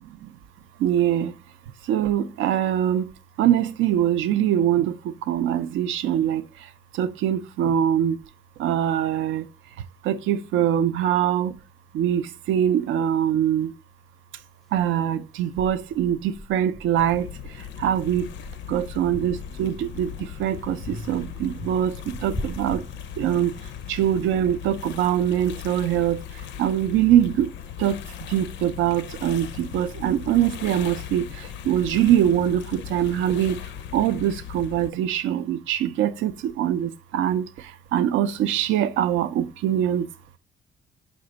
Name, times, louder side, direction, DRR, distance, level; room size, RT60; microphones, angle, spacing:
voice 1, 0.8-1.3 1.9-3.0 3.4-4.9 5.3-6.4 7.0-8.1 8.6-9.4 10.1-11.5 11.9-12.2 12.5-13.7 14.7-17.3 17.8-18.2 18.7-20.1 20.4-21.9 22.2-22.8 23.2-23.5 23.9-26.2 26.6-27.5 27.8-28.0 28.3-31.2 31.7-33.6 33.9-37.4 37.9-40.1, right 10 dB, 80° right, 0.4 m, -23 dB
sound 1, 14.8-14.9 15.6-17.4 17.9-20.2 20.8-23.6, left 1 dB, ahead, 0.4 m, -39 dB
sound 2, 17.0-34.9, left 10 dB, 70° left, 0.4 m, -38 dB
5.1 x 2.2 x 3.8 m
cardioid pair, 90°, 20 cm